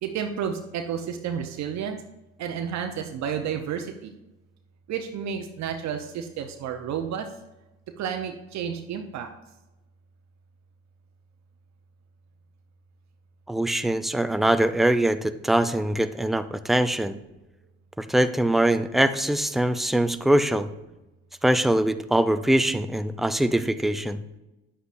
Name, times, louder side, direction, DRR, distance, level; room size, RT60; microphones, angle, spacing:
voice 1, 0.0-2.0 2.4-4.1 4.9-7.3 8.0-9.3, right 8 dB, 55° right, 5 dB, 0.9 m, -31 dB
voice 2, 13.5-17.2 18.0-20.7 21.4-24.2, right 1 dB, ahead, 11 dB, 0.5 m, -23 dB
9.9 x 8.0 x 2.6 m, 0.99 s
hypercardioid pair, 70°, 33 cm